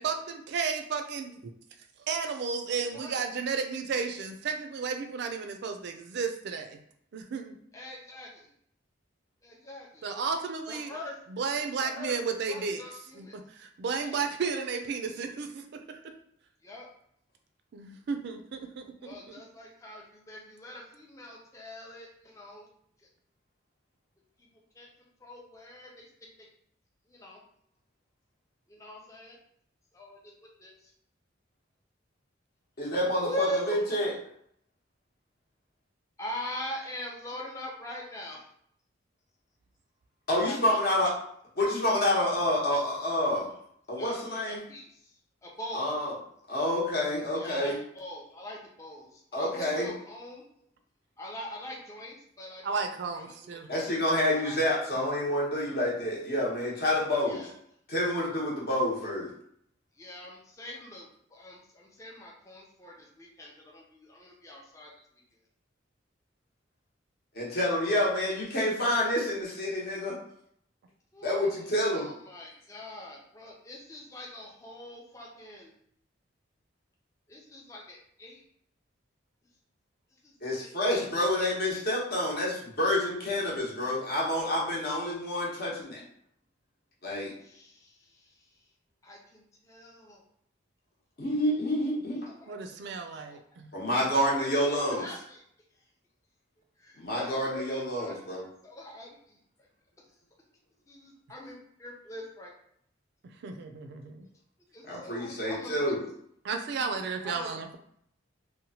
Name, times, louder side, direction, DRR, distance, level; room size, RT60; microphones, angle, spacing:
voice 1, 0.0-1.4 2.1-6.8 7.1-7.5 10.0-10.9 11.3-12.8 13.1-16.2 17.7-19.4 52.6-53.7 92.5-93.7 103.4-104.3 106.4-107.8, right 5 dB, 60° right, 7 dB, 0.3 m, -33 dB
voice 2, 7.7-8.5 9.4-10.2 10.7-11.2 11.8-12.1 12.5-13.4 14.0-14.3 14.5-14.6 16.6-16.9 19.0-22.7 24.8-24.9 25.2-26.1 27.1-27.4 28.7-29.4 29.9-30.2 30.6-30.9 33.0-33.8 36.2-38.4 40.4-40.8 44.0-44.1 44.5-45.1 45.4-45.9 47.3-50.4 51.2-52.9 53.1-53.6 54.3-54.6 57.3-57.5 60.0-64.9 71.1-75.7 77.3-78.4 80.2-80.3 80.6-80.7 87.4-88.4 89.0-90.2 92.4-92.5 94.4-95.4 96.8-99.1 100.9-102.5 104.7-105.9 107.2-107.6, left 1 dB, 15° left, -2 dB, 0.4 m, -42 dB
voice 3, 32.8-34.1 40.3-41.1 41.6-43.5 43.9-44.6 45.7-46.1 46.5-47.8 49.3-49.9 53.7-57.5 57.9-59.3 67.3-70.2 71.2-72.1 80.4-86.0 87.0-87.3 91.2-92.3 93.7-95.1 97.0-98.5 104.9-106.0, left 1 dB, 50° left, -4 dB, 0.9 m, -28 dB
2.9 x 2.1 x 2.7 m, 0.68 s
head